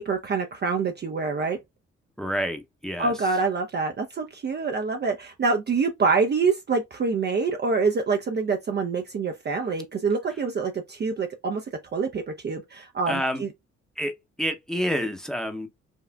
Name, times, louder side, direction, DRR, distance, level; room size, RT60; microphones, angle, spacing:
voice 1, 0.0-1.6 3.0-11.6 11.9-13.5, right 4 dB, 30° right, 0.6 m, -26 dB
voice 2, 2.2-3.1 13.1-13.4 14.0-14.1 14.4-15.7, equal, ahead, 0.8 m, -28 dB
5.1 x 2.4 x 2.2 m
figure-of-eight pair, 40°, 37 cm